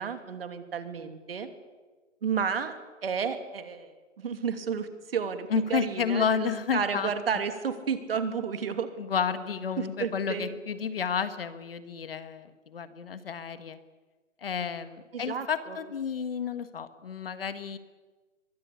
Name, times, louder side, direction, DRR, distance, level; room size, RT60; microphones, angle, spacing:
voice 1, 0.0-1.5 2.2-2.7 3.0-3.9 4.2-8.9 9.8-10.5 15.1-15.8, right 6 dB, 50° right, 8 dB, 2.8 m, -32 dB
voice 2, 5.5-7.1 9.0-13.8 14.4-17.8, left 6 dB, 50° left, 12 dB, 1.7 m, -31 dB
23.0 x 23.0 x 8.5 m, 1.3 s
hypercardioid pair, 165°, 37 cm